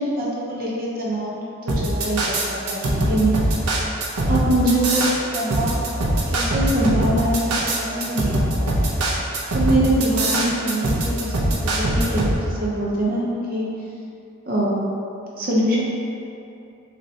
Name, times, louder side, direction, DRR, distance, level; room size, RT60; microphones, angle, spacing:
voice 1, 0.0-3.3 4.3-5.0 5.3-8.9 9.5-11.3 11.6-13.7 14.4-14.8 15.4-15.8, right 1 dB, 40° right, -6 dB, 0.6 m, -24 dB
sound 1, 1.7-12.3, right 1 dB, 85° right, 0.7 m, -22 dB
6.2 x 2.8 x 2.8 m, 2.7 s
head